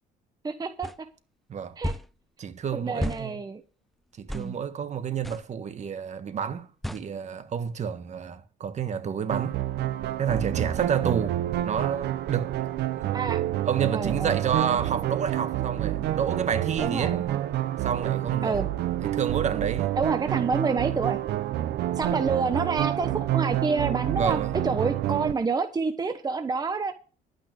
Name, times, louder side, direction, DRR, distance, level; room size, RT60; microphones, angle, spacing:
voice 1, 0.4-1.1 1.8-1.9 2.7-3.6 4.3-4.6 13.1-13.4 13.9-14.4 16.8-17.4 18.4-18.7 20.0-21.2 21.9-26.9, right 4 dB, 25° right, 1.1 m, -28 dB
sound 1, 0.8-1.0 1.8-2.1 3.0-3.2 4.3-4.5 5.2-5.4 6.8-7.1, equal, ahead, 0.6 m, -31 dB
voice 2, 2.4-3.4 4.2-9.6 10.2-11.4 11.6-12.5 13.0-13.1 13.6-17.2 17.8-18.6 19.0-19.9 22.1-22.3 24.1-24.5, right 7 dB, 45° right, 1.5 m, -29 dB
sound 2, 9.3-25.3, right 13 dB, 75° right, 1.0 m, -28 dB
11.5 x 9.4 x 5.2 m
cardioid pair, 110°, 17 cm